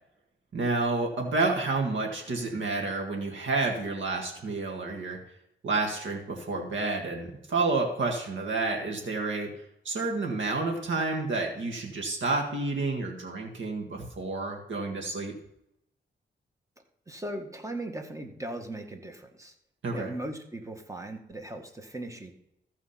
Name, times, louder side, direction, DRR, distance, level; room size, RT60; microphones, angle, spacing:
voice 1, 0.5-5.2 5.6-9.5 9.9-15.3 19.8-20.1, right 3 dB, 80° right, 1 dB, 1.9 m, -30 dB
voice 2, 17.1-19.6 19.9-22.3, right 1 dB, 15° right, 4 dB, 1.7 m, -38 dB
14.5 x 4.9 x 5.8 m, 0.79 s
cardioid pair, 75°, 20 cm